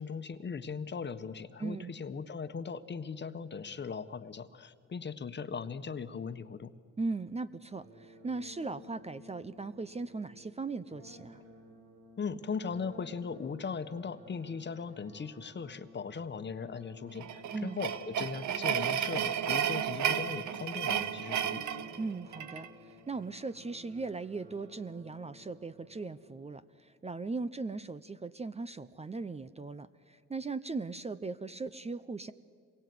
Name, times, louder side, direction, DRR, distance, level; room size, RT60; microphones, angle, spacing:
voice 1, 0.0-6.7 12.2-21.6, left 5 dB, 35° left, 10 dB, 1.3 m, -39 dB
voice 2, 1.6-1.9 7.0-11.4 17.5-17.8 22.0-32.3, right 3 dB, 20° right, 14 dB, 0.7 m, -38 dB
sound 1, 7.8-26.8, equal, 90° right, 6.3 m, -54 dB
sound 2, 17.2-22.7, right 9 dB, 70° right, 1.2 m, -33 dB
27.0 x 22.0 x 9.6 m, 2.1 s
cardioid pair, 90°, 30 cm